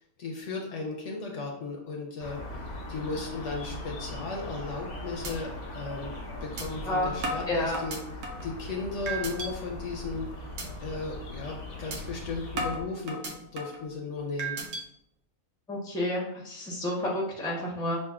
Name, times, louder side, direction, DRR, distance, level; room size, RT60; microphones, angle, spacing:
voice 1, 0.2-2.6 2.9-6.1 6.4-8.0 8.4-10.3 10.8-13.2 13.5-14.6, left 3 dB, 60° left, -1 dB, 0.9 m, -35 dB
sound 1, 2.2-12.8, left 1 dB, 90° left, 1.4 m, -40 dB
sound 2, 4.7-4.9 5.2-5.3 5.8-5.9 6.6-6.7 7.2-8.5 9.1-9.5 9.9-10.2 10.6-10.7 11.1-11.3 11.9-12.0 12.6-13.8 14.4-14.8, right 2 dB, 90° right, 1.2 m, -34 dB
voice 2, 7.5-7.8 15.7-18.0, left 1 dB, 5° left, -3 dB, 0.6 m, -30 dB
6.4 x 2.5 x 2.4 m, 0.76 s
omnidirectional pair, 1.5 m